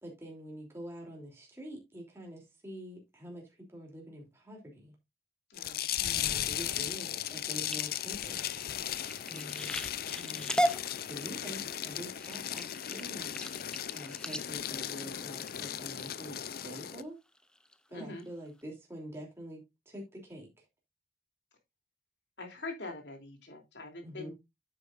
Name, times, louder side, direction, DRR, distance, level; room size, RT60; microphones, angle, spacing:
voice 1, 0.0-4.9 6.0-8.4 9.2-9.8 10.2-10.7 11.0-13.3 13.9-17.2 17.9-20.5 24.0-24.3, equal, 15° right, 3.0 m, -46 dB
voice 2, 5.5-5.9 6.2-6.3 6.7-6.8 7.2-7.6 9.3-9.7 10.0-10.4 17.9-18.3 22.4-24.3, left 2 dB, 85° left, 3.1 m, -45 dB
sound 1, 5.6-17.0, left 11 dB, 55° left, 0.5 m, -37 dB
sound 2, 7.3-16.0 16.6-16.9 17.4-17.7 18.2-18.3 18.6-18.7, equal, 5° left, 0.6 m, -37 dB
9.5 x 8.1 x 2.5 m
head